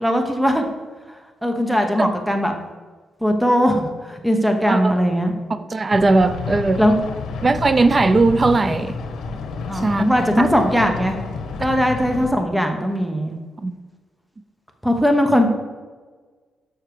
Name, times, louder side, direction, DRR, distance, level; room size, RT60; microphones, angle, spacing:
voice 1, 0.0-0.6 1.4-2.5 3.2-5.3 6.8-7.0 9.7-11.2 11.6-13.3 14.8-15.5, equal, 5° right, 4 dB, 0.9 m, -19 dB
voice 2, 4.6-5.0 5.7-6.8 7.4-9.0 9.7-10.5 13.6-13.8, right 3 dB, 25° right, 11 dB, 0.4 m, -19 dB
sound 1, 5.9-12.3, left 4 dB, 90° left, 1.0 m, -30 dB
6.8 x 6.4 x 4.7 m, 1.4 s
wide cardioid pair, 150°, 0 cm